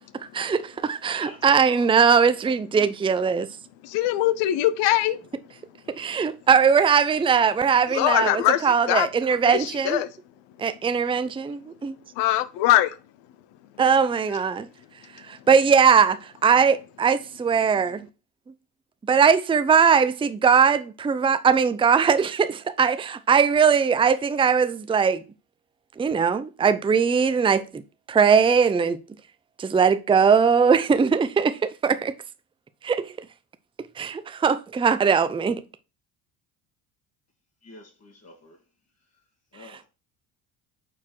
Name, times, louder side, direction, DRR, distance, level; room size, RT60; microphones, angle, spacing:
voice 1, 0.1-3.5 5.9-10.0 10.6-12.0 13.8-14.7 15.3-18.1 19.1-25.2 26.0-27.8 28.1-29.0 29.6-32.1 32.8-33.1 34.0-35.6, right 6 dB, 10° right, 0.5 m, -20 dB
voice 2, 1.1-2.0 37.6-38.6 39.5-39.9, left 3 dB, 35° left, 1.9 m, -47 dB
voice 3, 3.8-5.2 7.9-9.1 9.5-10.1 12.2-13.0, left 14 dB, 70° left, 0.8 m, -22 dB
5.8 x 4.4 x 4.6 m
hypercardioid pair, 70°, 46 cm